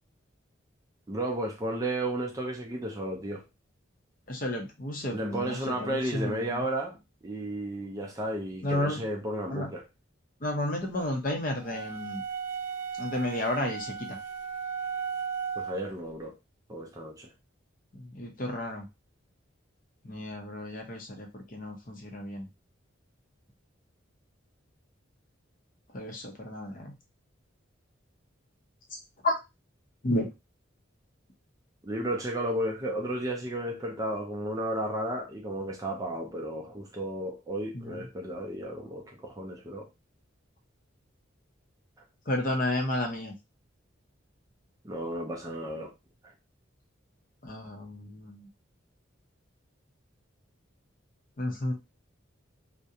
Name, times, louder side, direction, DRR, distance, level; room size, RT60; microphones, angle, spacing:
voice 1, 1.1-3.4 5.1-7.0 7.2-9.8 15.6-16.4 16.7-17.3 31.8-39.9 44.8-45.9, right 1 dB, 15° right, 0.4 m, -33 dB
voice 2, 4.3-6.6 8.6-9.1 9.5-9.7 10.4-12.2 13.0-14.2 17.9-18.8 20.0-22.5 25.9-27.0 29.2-29.4 30.0-30.3 37.7-38.0 42.3-43.3 47.4-48.5 51.4-51.7, left 1 dB, 40° left, 0.6 m, -32 dB
sound 1, 11.6-15.9, right 7 dB, 45° right, 0.7 m, -36 dB
2.4 x 2.1 x 2.7 m
head